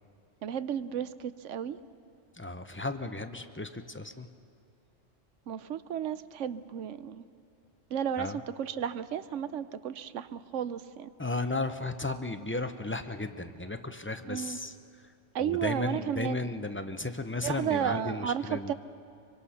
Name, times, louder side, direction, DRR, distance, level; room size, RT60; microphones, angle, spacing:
voice 1, 0.4-1.8 5.5-7.3 7.9-11.1 14.3-14.6 15.3-16.5 17.4-18.7, right 9 dB, 75° right, 14 dB, 1.0 m, -33 dB
voice 2, 2.3-4.3 8.2-8.4 11.2-15.1 15.4-18.7, left 2 dB, 15° left, 8 dB, 0.5 m, -35 dB
24.0 x 23.5 x 5.7 m, 2.5 s
omnidirectional pair, 1.3 m